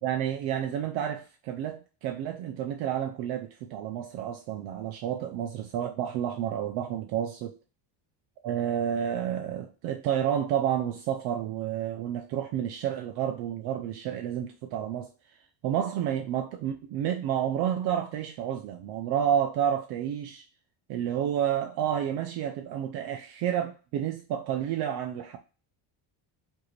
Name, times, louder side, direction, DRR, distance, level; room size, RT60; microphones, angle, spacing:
voice 1, 0.0-7.5 8.4-15.1 15.6-20.4 20.9-25.4, right 10 dB, 55° right, 0.5 m, -30 dB
4.9 x 2.7 x 3.1 m
cardioid pair, 175°, 48 cm